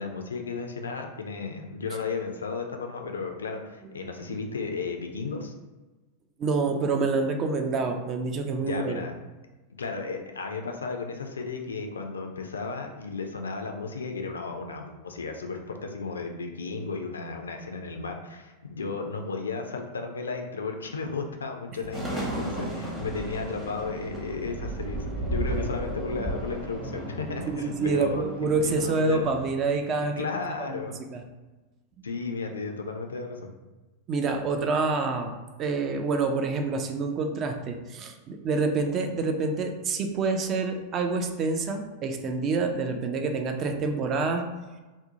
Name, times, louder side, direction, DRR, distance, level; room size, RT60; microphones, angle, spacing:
voice 1, 0.0-5.5 8.6-9.1 9.8-28.2 28.6-29.3 30.2-31.0 32.0-33.5, left 4 dB, 70° left, 4 dB, 0.3 m, -34 dB
voice 2, 6.4-9.1 27.4-30.3 30.6-30.8 31.1-31.2 32.0-32.1 34.1-35.3 35.6-44.5, right 4 dB, 30° right, 5 dB, 0.3 m, -27 dB
sound 1, 21.9-29.5, right 1 dB, 10° right, 0.7 m, -34 dB
2.5 x 2.0 x 2.7 m, 1.2 s
figure-of-eight pair, 90°, 0 cm